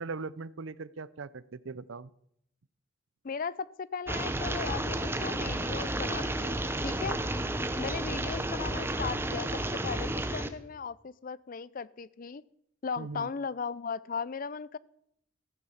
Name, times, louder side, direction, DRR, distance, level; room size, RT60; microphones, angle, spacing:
voice 1, 0.0-2.1 13.0-13.3, right 4 dB, 75° right, 19 dB, 0.6 m, -40 dB
voice 2, 3.2-7.2 7.8-12.4 12.8-14.8, left 5 dB, 45° left, 20 dB, 0.4 m, -37 dB
sound 1, 4.1-10.5, right 1 dB, 10° right, 0.9 m, -32 dB
15.0 x 9.5 x 7.1 m, 0.74 s
head